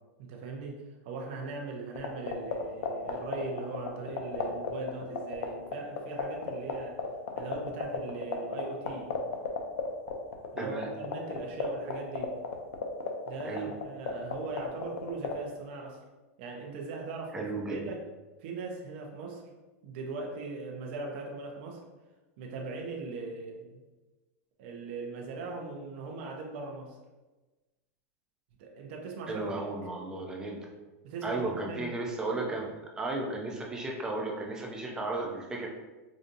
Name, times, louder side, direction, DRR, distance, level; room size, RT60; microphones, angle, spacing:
voice 1, 0.2-7.0 7.4-9.2 10.5-12.4 13.3-16.0 16.4-17.4 17.7-18.0 18.4-19.4 19.8-21.8 22.4-23.8 24.6-27.0 28.6-29.8 31.0-31.9, right 3 dB, 50° right, 0 dB, 0.6 m, -39 dB
sound 1, 1.9-15.3, left 8 dB, 85° left, 0.7 m, -31 dB
voice 2, 10.6-10.9 13.4-13.7 17.3-17.8 29.3-30.7 31.2-32.7 32.9-35.7, right 2 dB, 10° right, 0 dB, 0.4 m, -34 dB
4.9 x 2.7 x 2.6 m, 1.2 s
supercardioid pair, 170°, 8 cm